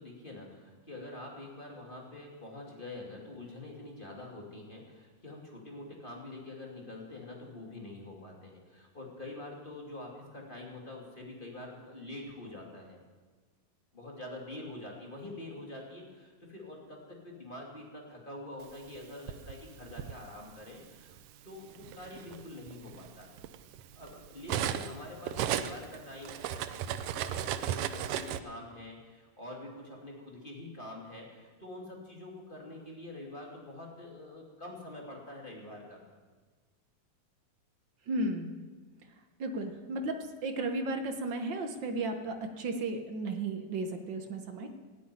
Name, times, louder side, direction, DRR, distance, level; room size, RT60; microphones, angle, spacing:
voice 1, 0.0-13.0 13.9-21.2 21.4-23.3 23.9-36.0, left 2 dB, 15° left, -1 dB, 2.5 m, -46 dB
Cutlery silverware, 18.9-20.2 21.1-21.3 21.7-25.0 25.2-28.4, right 10 dB, 80° right, 1.4 m, -35 dB
voice 2, 38.1-38.6 39.4-44.7, right 2 dB, 60° right, 6 dB, 1.2 m, -34 dB
16.0 x 8.5 x 9.7 m, 1.4 s
omnidirectional pair, 3.4 m